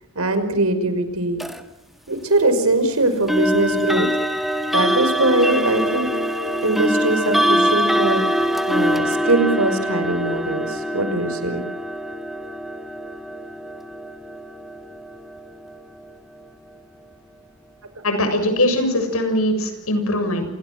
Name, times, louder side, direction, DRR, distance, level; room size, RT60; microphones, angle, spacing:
voice 1, 0.2-1.4 2.1-4.1 4.7-6.1 6.6-11.7, right 2 dB, 90° right, 8 dB, 5.6 m, -21 dB
sound 1, 1.4-1.6 3.3-16.1, equal, ahead, 1.8 m, -23 dB
voice 2, 18.0-20.5, left 1 dB, 80° left, 7 dB, 7.3 m, -21 dB
29.5 x 28.0 x 6.3 m, 0.82 s
head